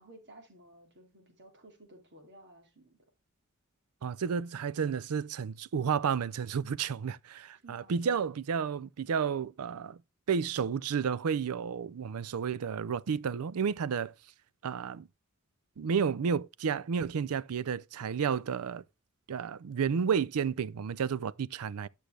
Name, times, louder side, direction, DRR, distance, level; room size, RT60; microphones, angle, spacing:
voice 1, 0.0-3.0 7.6-7.9, right 1 dB, 55° right, 2.8 m, -55 dB
voice 2, 4.0-10.0 10.3-14.1 14.6-15.1 15.8-18.8 19.3-21.9, right 6 dB, 80° right, 0.4 m, -31 dB
10.0 x 6.4 x 3.3 m
head